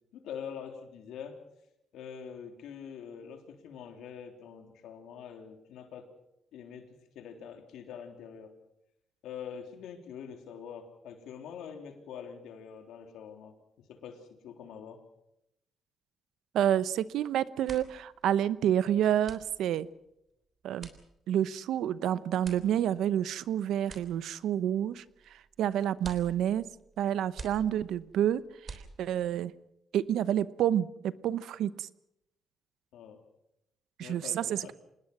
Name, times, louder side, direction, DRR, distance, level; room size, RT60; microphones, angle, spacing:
voice 1, 0.1-1.4 1.9-6.1 6.5-8.5 9.2-13.5 13.9-15.0 32.9-33.2 34.0-34.7, left 7 dB, 85° left, 5 dB, 3.5 m, -44 dB
voice 2, 16.5-19.9 20.6-20.9 21.3-25.0 25.3-26.6 27.0-29.5 29.9-31.9 34.0-34.7, right 10 dB, 80° right, 17 dB, 0.8 m, -29 dB
sound 1, 16.9-17.2 17.5-29.4, right 4 dB, 40° right, 3.4 m, -50 dB
26.5 x 20.0 x 6.1 m, 0.83 s
cardioid pair, 90°, 0 cm